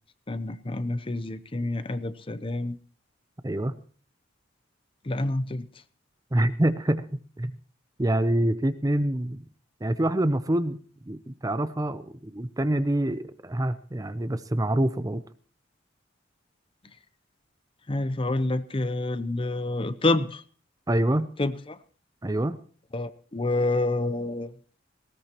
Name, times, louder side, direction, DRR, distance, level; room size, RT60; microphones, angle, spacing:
voice 1, 0.3-2.8 5.0-5.7 17.9-20.4 21.4-21.8 22.9-24.5, left 2 dB, 25° left, 13 dB, 0.6 m, -28 dB
voice 2, 3.4-3.8 6.3-7.0 7.4-7.5 8.0-9.4 9.8-10.8 11.1-15.2 20.9-21.3 22.2-22.6, right 1 dB, 20° right, 13 dB, 0.6 m, -26 dB
19.0 x 17.5 x 3.0 m, 0.44 s
head